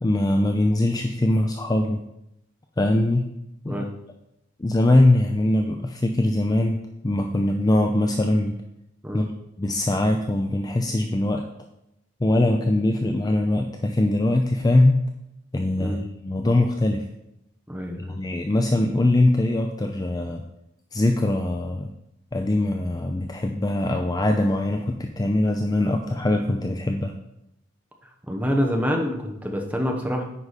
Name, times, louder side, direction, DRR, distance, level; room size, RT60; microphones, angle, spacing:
voice 1, 0.0-2.0 2.8-3.2 3.6-3.8 4.6-8.5 9.1-9.3 9.6-11.4 12.2-15.0 15.5-17.1 18.0-20.4 20.9-21.9 22.3-27.1, left 1 dB, 20° left, 4 dB, 0.4 m, -22 dB
voice 2, 17.7-18.2 28.3-30.2, equal, 5° right, 1 dB, 0.9 m, -26 dB
9.7 x 4.9 x 4.1 m, 0.84 s
head